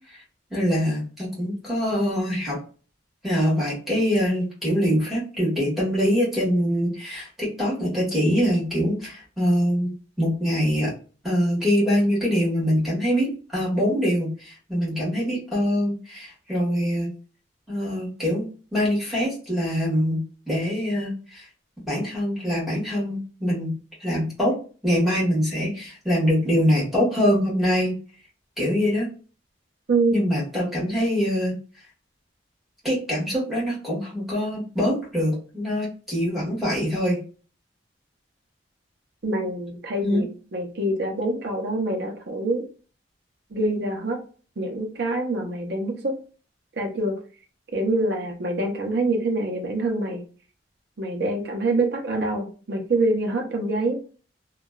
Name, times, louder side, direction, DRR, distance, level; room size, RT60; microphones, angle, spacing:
voice 1, 0.5-2.6 3.2-9.9 10.2-10.9 11.2-17.1 17.7-21.5 21.9-23.7 24.0-24.6 24.8-28.0 28.6-29.1 30.1-31.5 32.8-37.2 40.0-40.2, equal, ahead, -7 dB, 1.3 m, -24 dB
voice 2, 29.9-30.2 39.2-42.6 43.5-44.2 44.6-46.1 46.8-47.2 47.7-50.2 51.0-54.0, right 2 dB, 65° right, 1 dB, 0.6 m, -25 dB
2.9 x 2.3 x 2.3 m, 0.38 s
head